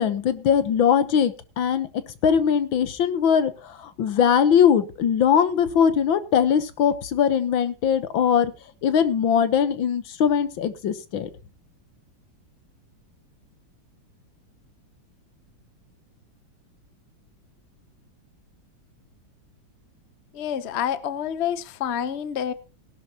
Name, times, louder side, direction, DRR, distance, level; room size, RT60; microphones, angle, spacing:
voice 1, 0.0-1.9 2.2-8.5 8.8-11.3, left 8 dB, 80° left, 1.9 m, -21 dB
voice 2, 20.3-22.5, left 9 dB, 45° left, 0.9 m, -28 dB
17.5 x 11.5 x 2.9 m
omnidirectional pair, 2.1 m